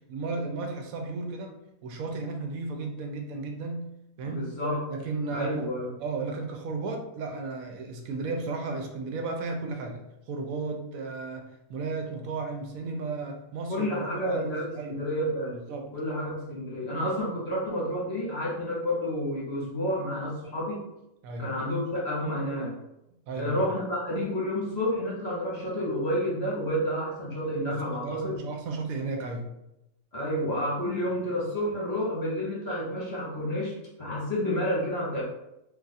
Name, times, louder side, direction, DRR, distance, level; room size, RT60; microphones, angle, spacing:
voice 1, 0.1-1.5 1.8-3.9 4.2-4.5 4.9-5.7 6.0-10.0 10.3-15.0 15.5-15.9 21.2-21.5 23.3-23.6 27.7-29.5, right 3 dB, 80° right, 3 dB, 1.0 m, -34 dB
voice 2, 4.2-4.8 5.3-5.9 13.7-15.6 15.9-20.8 21.4-22.7 23.3-28.4 30.1-33.7 34.0-35.2, equal, 50° left, -4 dB, 1.1 m, -30 dB
2.6 x 2.4 x 4.0 m, 0.87 s
omnidirectional pair, 1.5 m